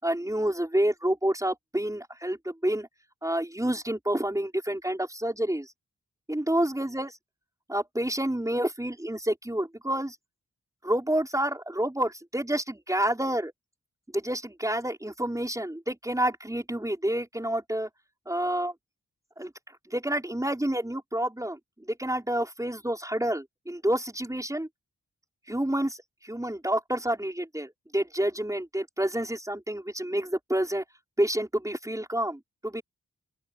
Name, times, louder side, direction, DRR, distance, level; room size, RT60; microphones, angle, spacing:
voice 1, 0.0-2.9 3.2-5.7 6.3-7.1 7.7-10.2 10.8-13.5 14.1-17.9 18.3-18.7 19.4-19.5 19.9-21.6 21.9-24.7 25.5-26.0 26.2-30.8 31.2-32.8, right 1 dB, 10° right, 5.3 m, -28 dB
open air
wide cardioid pair, 100°, 34 cm